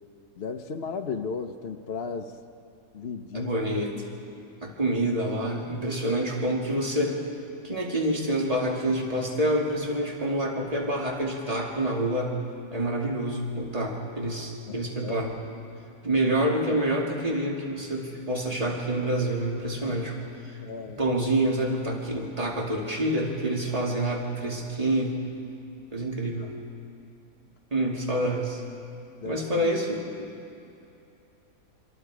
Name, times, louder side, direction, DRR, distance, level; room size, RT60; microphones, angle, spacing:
voice 1, 0.4-2.4 2.9-3.5 14.7-15.3 20.6-21.0 29.2-29.7, left 5 dB, 50° left, 5 dB, 0.9 m, -35 dB
voice 2, 3.3-3.9 4.6-7.2 7.6-12.3 12.7-15.3 16.0-20.2 20.8-25.2 25.9-26.5 27.7-28.6 29.2-30.3, right 1 dB, 25° right, -2 dB, 2.6 m, -27 dB
26.0 x 25.0 x 4.9 m, 2.7 s
omnidirectional pair, 1.7 m